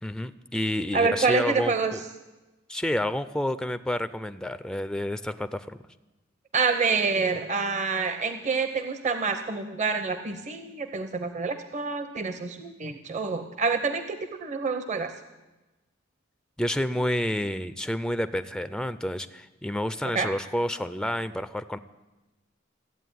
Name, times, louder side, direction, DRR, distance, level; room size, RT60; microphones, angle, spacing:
voice 1, 0.0-2.0 2.7-5.8 16.6-21.8, left 1 dB, 5° left, 11 dB, 0.4 m, -29 dB
voice 2, 0.9-2.0 6.5-15.1 20.1-20.3, right 4 dB, 40° right, 8 dB, 0.7 m, -27 dB
14.5 x 8.6 x 9.3 m, 1.1 s
head